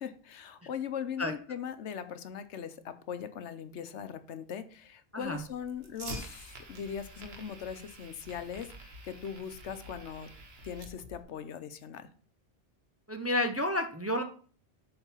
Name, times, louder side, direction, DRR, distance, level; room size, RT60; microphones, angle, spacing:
voice 1, 0.0-10.3 10.6-12.1, left 8 dB, 85° left, 11 dB, 1.0 m, -40 dB
Fire, 5.2-11.2, right 2 dB, 60° right, 1.4 m, -47 dB
voice 2, 13.1-14.2, left 1 dB, 20° right, 6 dB, 0.4 m, -30 dB
8.1 x 3.9 x 5.6 m, 0.42 s
omnidirectional pair, 1.2 m